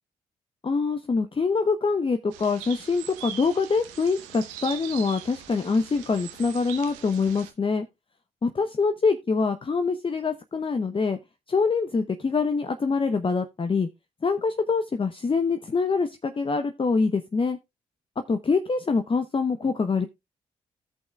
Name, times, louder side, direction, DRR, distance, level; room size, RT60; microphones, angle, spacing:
voice 1, 0.6-7.9 8.4-11.2 11.5-13.9 14.2-17.6 18.3-20.1, left 4 dB, 35° left, 0.9 m, -25 dB
sound 1, 2.3-7.5, right 10 dB, 90° right, 0.9 m, -41 dB
17.0 x 5.7 x 2.3 m
hypercardioid pair, 40°, 16 cm